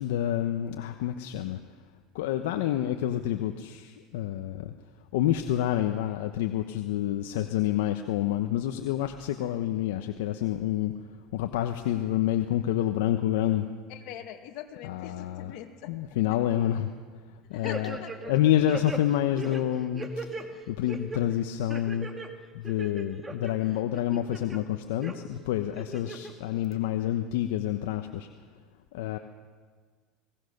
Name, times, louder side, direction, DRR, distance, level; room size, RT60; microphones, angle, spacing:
voice 1, 0.0-1.6 2.1-4.7 5.1-10.9 11.3-13.7 14.8-15.5 15.8-16.9 17.5-22.1 22.5-28.3 28.9-29.2, left 12 dB, 85° left, 6 dB, 1.0 m, -28 dB
voice 2, 13.9-15.9 17.5-18.1 26.0-26.2, left 11 dB, 65° left, 5 dB, 2.3 m, -41 dB
sound 1, 17.6-18.4 18.7-20.5 20.9-21.2 21.7-22.3 22.6-23.5 23.9-24.6 25.0-25.1 25.8-26.3 26.7-26.8, right 3 dB, 15° right, 1.9 m, -38 dB
21.0 x 19.0 x 6.6 m, 1.6 s
supercardioid pair, 120°, 0 cm